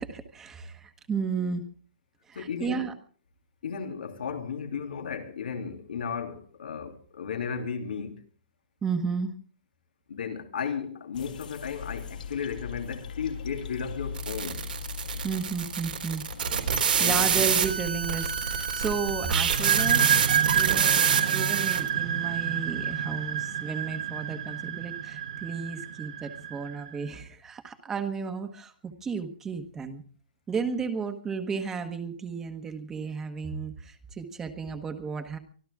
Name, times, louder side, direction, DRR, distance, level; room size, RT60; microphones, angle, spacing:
voice 1, 0.0-1.6 2.3-2.9 8.8-9.3 15.2-16.2 17.0-30.0 30.5-35.4, right 5 dB, 10° right, 1.3 m, -33 dB
voice 2, 2.3-2.9 3.6-8.2 10.1-14.6 16.9-17.5, left 6 dB, 85° left, 2.9 m, -34 dB
sound 1, 11.1-19.5, left 6 dB, 65° left, 1.9 m, -40 dB
sound 2, 14.2-21.9, right 7 dB, 85° right, 3.8 m, -27 dB
sound 3, 19.4-26.9, right 8 dB, 45° right, 1.5 m, -28 dB
24.5 x 13.5 x 3.6 m
hypercardioid pair, 175°, 5 cm